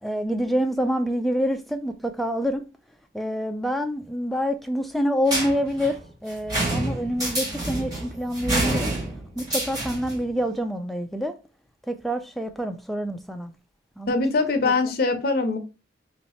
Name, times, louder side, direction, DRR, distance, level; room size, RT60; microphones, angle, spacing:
voice 1, 0.0-2.6 3.1-8.9 9.4-11.3 11.9-13.5 14.0-14.2 14.7-14.9, equal, ahead, 0.3 m, -27 dB
sound 1, 5.3-10.2, right 1 dB, 20° right, 1.7 m, -28 dB
voice 2, 14.1-15.6, left 3 dB, 50° left, 0.7 m, -22 dB
3.1 x 2.9 x 4.2 m
head